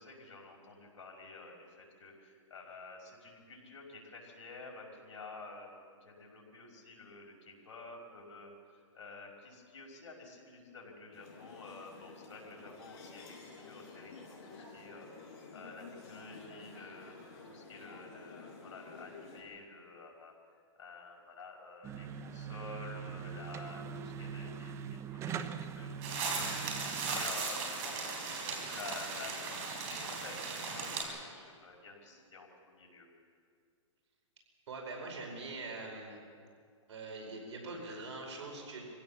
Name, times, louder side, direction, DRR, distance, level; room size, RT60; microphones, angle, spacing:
voice 1, 0.0-8.5 8.9-15.1 15.5-20.3 20.8-26.0 26.3-33.1, left 3 dB, 75° left, -1 dB, 5.4 m, -50 dB
sound 1, 11.1-19.4, left 4 dB, 50° left, 5.8 m, -51 dB
sound 2, 21.8-27.2, right 7 dB, 15° right, 0.7 m, -42 dB
sound 3, 26.0-31.0, right 4 dB, 35° right, 4.4 m, -37 dB
voice 2, 34.7-36.2 36.9-38.8, right 3 dB, 65° right, 1 dB, 5.1 m, -43 dB
23.5 x 16.0 x 7.1 m, 2.2 s
hypercardioid pair, 145°, 16 cm